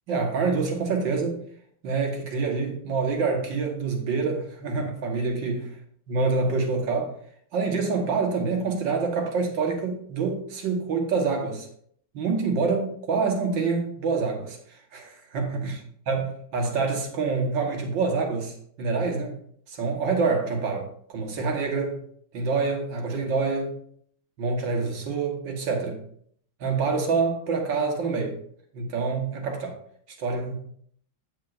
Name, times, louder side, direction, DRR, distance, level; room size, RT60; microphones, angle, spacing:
voice 1, 0.1-1.4 1.8-5.7 6.1-7.1 7.5-11.7 12.1-15.7 16.1-16.3 16.5-19.3 19.7-22.0 22.3-23.8 24.4-26.0 26.6-28.4 28.7-29.8 30.2-30.6, right 4 dB, 65° right, 1 dB, 2.0 m, -26 dB
8.3 x 7.8 x 2.6 m, 0.63 s
omnidirectional pair, 2.3 m